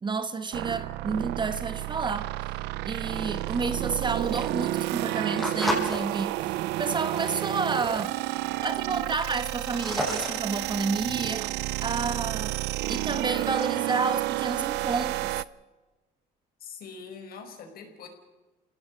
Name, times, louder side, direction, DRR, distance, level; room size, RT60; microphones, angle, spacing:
voice 1, 0.0-2.3 2.8-8.2 8.6-12.6 12.9-15.4, right 4 dB, 25° right, 1.3 m, -30 dB
sound 1, 0.5-15.4, right 18 dB, 90° right, 0.6 m, -31 dB
sound 2, 3.7-6.0 6.5-6.8 7.3-7.4 7.6-7.7 7.9-8.4 8.9-11.5, equal, ahead, 7.3 m, -32 dB
voice 2, 16.6-18.1, left 5 dB, 60° left, 5.2 m, -43 dB
29.0 x 18.0 x 5.4 m
cardioid pair, 110°, 17 cm